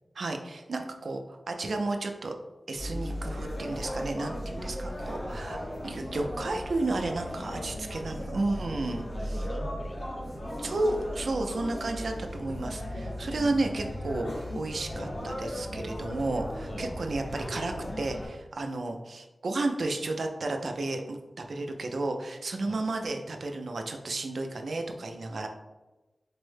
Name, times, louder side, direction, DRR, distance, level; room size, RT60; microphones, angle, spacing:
voice 1, 0.2-2.4 2.7-9.4 10.6-25.5, right 2 dB, 85° right, 4 dB, 0.4 m, -32 dB
sound 1, 2.7-18.3, equal, 75° left, 1.2 m, -36 dB
voice 2, 7.6-8.6 9.1-10.8 16.7-18.0 22.6-22.8, left 1 dB, 35° left, 4 dB, 0.5 m, -47 dB
4.4 x 2.1 x 3.2 m, 1.1 s
wide cardioid pair, 100°, 0 cm